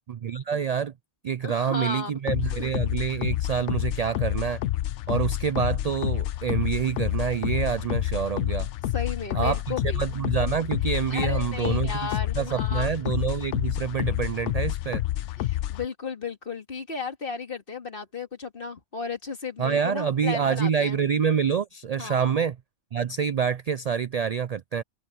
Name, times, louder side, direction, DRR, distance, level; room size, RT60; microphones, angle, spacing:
voice 1, 0.2-0.9 1.2-4.6 5.1-8.7 9.3-12.1 12.4-15.0 19.6-22.6 22.9-24.8, right 7 dB, 65° right, 0.3 m, -27 dB
voice 2, 1.4-2.5 8.9-10.1 11.1-12.9 15.4-21.0 22.0-22.3, left 5 dB, 50° left, 2.4 m, -34 dB
sound 1, 2.3-15.9, left 14 dB, 75° left, 0.9 m, -28 dB
omnidirectional pair, 1.2 m